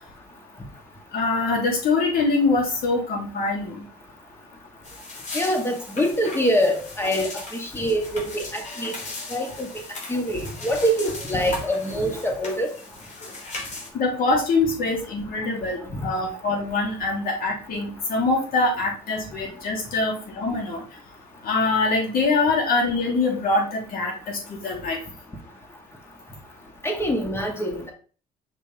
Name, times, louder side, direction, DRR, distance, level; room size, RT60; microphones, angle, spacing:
voice 1, 1.1-3.9 13.9-20.8 21.4-25.0, left 3 dB, 60° left, -1 dB, 3.4 m, -24 dB
sound 1, 4.8-13.9, left 2 dB, 45° left, 3.1 m, -37 dB
voice 2, 5.3-8.9 9.3-9.7 10.1-12.7 15.9-16.1 26.8-27.9, equal, 15° left, 2 dB, 2.0 m, -25 dB
6.1 x 5.5 x 3.7 m, 0.39 s
cardioid pair, 110°, 17 cm